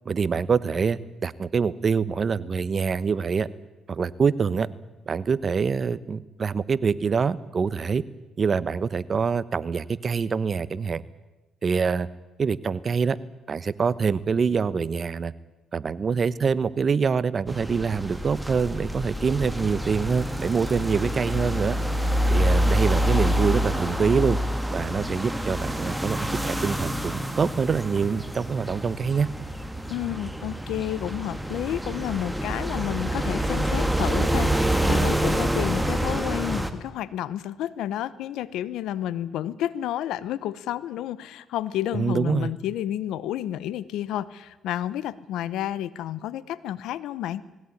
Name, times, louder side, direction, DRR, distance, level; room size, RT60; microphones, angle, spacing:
voice 1, 0.0-3.5 3.9-4.7 5.1-8.0 8.4-11.0 11.6-12.1 12.4-13.2 13.5-15.3 15.7-21.8 22.3-24.4 24.7-29.3 41.9-42.5, right 5 dB, 45° right, 17 dB, 1.0 m, -25 dB
sound 1, 17.5-36.7, equal, 5° right, 2.0 m, -27 dB
voice 2, 29.9-47.4, left 12 dB, 85° left, 18 dB, 0.9 m, -31 dB
19.5 x 17.0 x 9.9 m, 1.1 s
cardioid pair, 90°, 0 cm